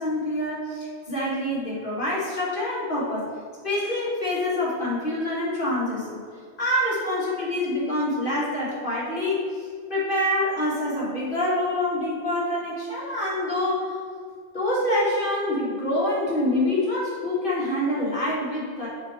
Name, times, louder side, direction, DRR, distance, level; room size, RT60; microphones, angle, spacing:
voice 1, 0.0-3.3 3.6-6.2 6.6-14.0 14.5-18.9, left 1 dB, 50° left, -7 dB, 2.1 m, -26 dB
6.1 x 5.3 x 4.3 m, 2.1 s
omnidirectional pair, 1.1 m